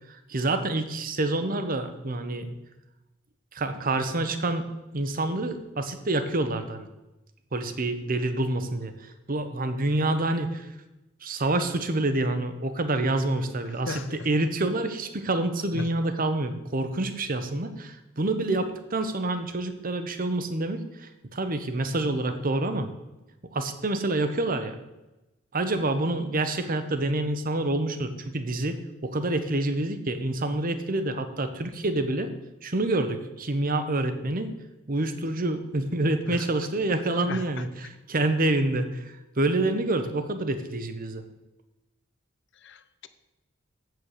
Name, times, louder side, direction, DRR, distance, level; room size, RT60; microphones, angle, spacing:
voice 1, 0.1-2.6 3.5-4.7 4.9-6.9 7.5-8.9 9.3-10.7 11.2-22.9 23.5-24.8 25.5-32.3 32.6-34.5 34.9-41.2, right 2 dB, 45° right, 9 dB, 1.0 m, -27 dB
voice 2, 37.2-37.6 42.6-43.1, left 3 dB, 65° left, 12 dB, 0.8 m, -35 dB
8.0 x 7.7 x 6.7 m, 1.0 s
head